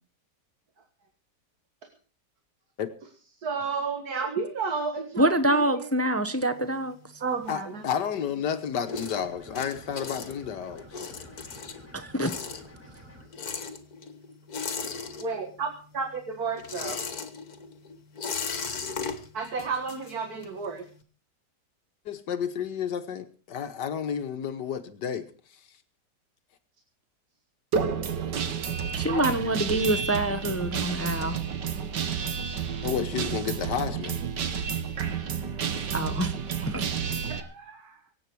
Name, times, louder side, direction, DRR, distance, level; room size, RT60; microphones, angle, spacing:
voice 1, 3.4-5.9 7.2-7.8 15.2-17.0 19.3-20.8 29.1-29.4 29.7-29.8 37.3-38.0, right 5 dB, 60° right, 2.1 m, -32 dB
voice 2, 5.2-7.0 11.9-12.3 29.0-31.4 35.9-36.3 36.6-36.9, right 1 dB, 15° left, 0.6 m, -26 dB
sound 1, 6.5-8.1 8.5-15.7 16.0-20.7, left 5 dB, 60° left, 2.0 m, -37 dB
voice 3, 7.5-10.9 22.1-25.3 32.8-34.2, left 8 dB, 80° left, 1.7 m, -31 dB
sound 2, 8.9-13.3, right 1 dB, 10° right, 6.7 m, -50 dB
Guitar, 27.7-37.4, right 7 dB, 80° right, 1.9 m, -30 dB
24.5 x 8.7 x 4.7 m
omnidirectional pair, 1.8 m